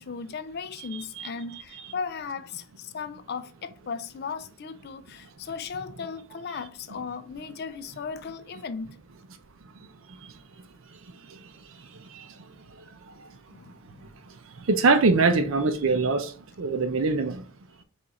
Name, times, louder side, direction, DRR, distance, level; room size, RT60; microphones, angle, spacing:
voice 1, 0.0-8.9 13.5-14.1, left 5 dB, 45° left, 0.4 m, -36 dB
voice 2, 14.7-16.3 16.6-17.4, right 3 dB, 60° right, 0.5 m, -22 dB
4.9 x 2.5 x 4.1 m
head